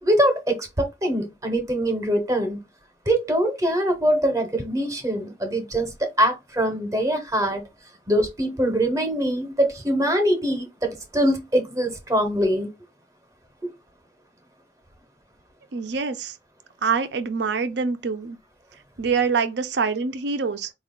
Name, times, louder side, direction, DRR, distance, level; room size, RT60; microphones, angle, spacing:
voice 1, 0.0-2.6 3.1-7.6 8.1-12.7 13.6-13.7, right 1 dB, 15° right, 0.8 m, -23 dB
voice 2, 15.7-16.4 16.8-18.4 19.0-20.7, right 5 dB, 60° right, 0.5 m, -25 dB
4.4 x 2.4 x 3.6 m
head